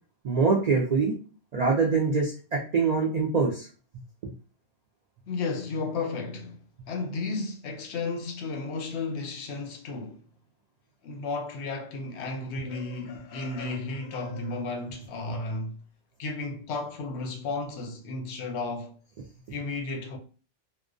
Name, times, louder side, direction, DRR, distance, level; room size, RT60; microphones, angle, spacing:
voice 1, 0.2-1.2 1.5-3.7 4.2-4.3, right 4 dB, 80° right, 0.3 m, -24 dB
voice 2, 5.3-6.6 6.9-10.2 11.0-15.8 16.2-19.0 19.5-20.2, left 3 dB, 70° left, 0.8 m, -33 dB
2.4 x 2.1 x 2.4 m
omnidirectional pair, 1.2 m